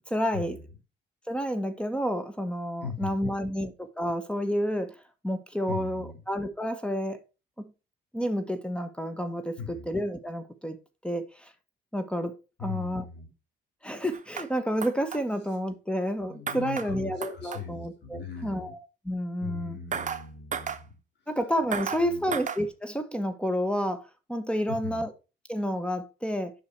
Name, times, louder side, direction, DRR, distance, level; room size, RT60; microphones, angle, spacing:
voice 1, 0.1-0.6 1.3-4.9 5.2-7.2 7.6-7.7 8.1-10.8 11.0-11.5 11.9-12.3 12.6-13.0 13.8-19.8 21.3-25.1 25.5-26.5, equal, 5° left, 1.3 m, -30 dB
voice 2, 2.8-3.6 5.7-6.2 9.6-9.9 12.6-13.3 16.2-18.7 19.4-20.9 22.0-22.4 24.7-25.0, left 6 dB, 60° left, 4.4 m, -40 dB
sound 1, 14.1-14.5 14.8-15.2 16.5-16.9 17.2-17.6 19.9-20.2 20.5-20.8 21.7-22.0 22.3-22.6, right 6 dB, 40° right, 0.9 m, -33 dB
7.1 x 5.7 x 4.7 m
cardioid pair, 90°, 20 cm